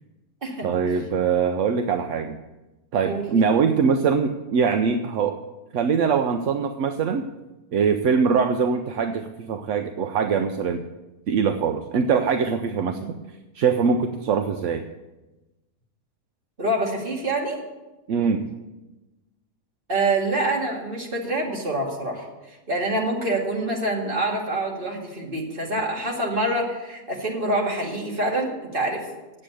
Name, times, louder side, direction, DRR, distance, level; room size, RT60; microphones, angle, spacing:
voice 1, 0.6-2.4 2.9-5.4 5.7-7.3 7.7-10.8 11.3-13.0 13.5-14.8 18.1-18.5, right 6 dB, 65° right, 7 dB, 0.8 m, -22 dB
voice 2, 16.6-17.6 19.9-29.1, right 2 dB, 35° right, -1 dB, 2.3 m, -26 dB
8.9 x 7.7 x 8.4 m, 1.1 s
omnidirectional pair, 1.6 m